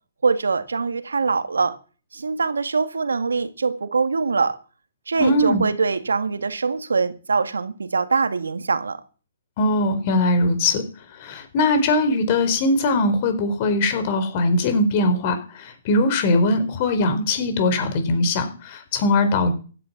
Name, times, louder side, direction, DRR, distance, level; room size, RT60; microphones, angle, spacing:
voice 1, 0.2-1.8 2.1-4.6 5.1-9.0, right 4 dB, 90° right, 1.9 m, -23 dB
voice 2, 5.2-5.7 9.6-10.8 11.2-19.5, left 2 dB, 40° left, 4.5 m, -21 dB
15.5 x 10.0 x 7.6 m
hypercardioid pair, 140°, 0 cm